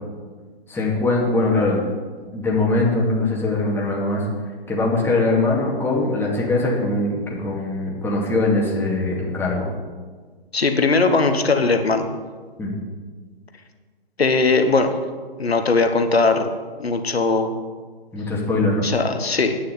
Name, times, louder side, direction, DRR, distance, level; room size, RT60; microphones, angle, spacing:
voice 1, 0.7-1.8 2.3-4.2 4.7-9.7 12.6-12.7 18.1-18.9, left 2 dB, 5° left, -3 dB, 2.4 m, -21 dB
voice 2, 10.5-12.1 14.2-15.0 15.4-16.5 16.8-17.5 18.8-19.6, left 3 dB, 85° left, 6 dB, 1.3 m, -19 dB
9.6 x 6.5 x 8.1 m, 1.5 s
figure-of-eight pair, 130°, 30 cm